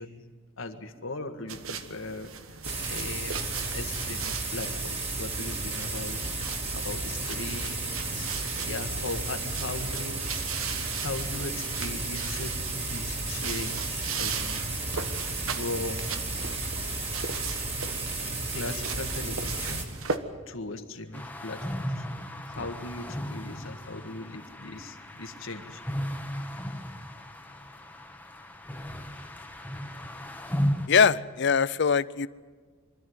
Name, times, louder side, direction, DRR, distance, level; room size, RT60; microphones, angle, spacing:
voice 1, 0.0-2.6 2.9-10.2 11.0-14.8 15.5-16.3 18.5-20.0 20.5-22.0 22.5-25.8, left 2 dB, 75° left, 1.7 m, -39 dB
sound 1, 1.5-20.2, right 6 dB, 85° right, 1.4 m, -38 dB
sound 2, 2.6-19.8, right 2 dB, 30° right, 3.0 m, -33 dB
sound 3, 21.1-30.9, equal, 10° left, 1.2 m, -35 dB
voice 2, 30.9-32.3, left 6 dB, 60° left, 0.6 m, -22 dB
24.0 x 13.5 x 9.5 m
head